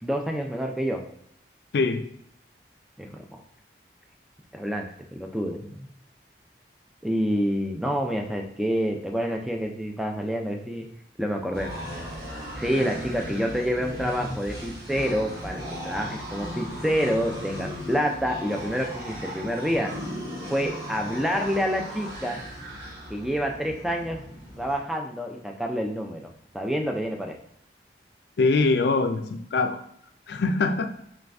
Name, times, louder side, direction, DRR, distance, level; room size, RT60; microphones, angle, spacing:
voice 1, 0.0-1.0 3.0-3.2 4.5-5.9 7.0-10.9 11.2-11.7 12.6-19.9 20.5-22.4 23.1-24.2 24.6-27.3, equal, ahead, 2 dB, 0.4 m, -28 dB
voice 2, 1.7-2.1 28.4-29.8 30.3-30.9, left 3 dB, 70° left, 7 dB, 0.4 m, -23 dB
sound 1, 11.5-24.8, equal, 55° right, 1.7 m, -36 dB
3.9 x 3.2 x 3.4 m, 0.72 s
head